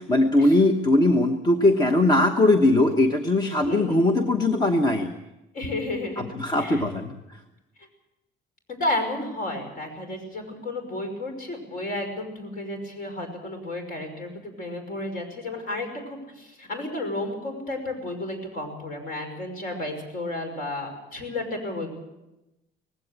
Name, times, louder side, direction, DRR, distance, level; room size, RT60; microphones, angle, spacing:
voice 1, 0.0-5.1 6.2-7.4, left 2 dB, 20° left, 5 dB, 1.1 m, -20 dB
voice 2, 3.6-4.2 5.5-6.8 8.7-14.3 14.6-21.9, left 2 dB, 50° left, 5 dB, 5.8 m, -32 dB
19.0 x 16.0 x 8.8 m, 0.96 s
cardioid pair, 165°, 18 cm